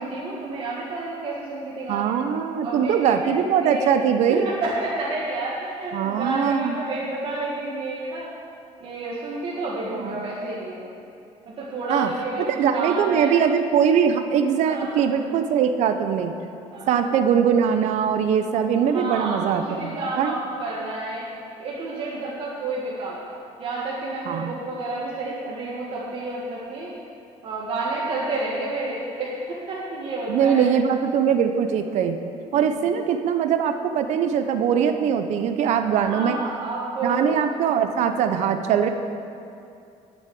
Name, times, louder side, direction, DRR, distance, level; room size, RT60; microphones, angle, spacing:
voice 1, 0.0-2.2 2.6-3.3 3.6-3.9 4.4-8.3 8.8-10.9 11.5-12.4 12.7-13.3 14.6-15.0 16.7-17.0 18.9-21.2 21.6-23.2 23.6-26.9 27.4-30.6 32.5-32.8 36.1-37.4, right 2 dB, 50° right, -6 dB, 1.7 m, -30 dB
voice 2, 1.9-4.5 5.9-6.8 10.0-10.2 11.9-12.1 12.5-16.3 16.9-20.4 24.3-24.5 30.3-32.2 32.5-36.4 37.0-38.9, right 7 dB, 65° right, 7 dB, 0.7 m, -21 dB
11.0 x 6.2 x 8.5 m, 2.5 s
cardioid pair, 155°, 12 cm